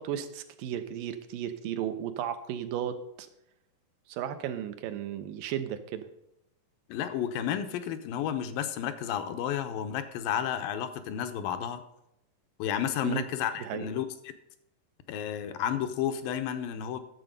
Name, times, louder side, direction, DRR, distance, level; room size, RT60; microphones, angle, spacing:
voice 1, 0.0-3.3 4.1-6.1 13.0-13.2 13.6-13.9, right 10 dB, 80° right, 9 dB, 2.5 m, -34 dB
voice 2, 6.9-11.8 12.6-14.1 15.1-17.0, left 9 dB, 85° left, 9 dB, 2.6 m, -31 dB
11.0 x 7.5 x 5.3 m, 0.84 s
omnidirectional pair, 4.0 m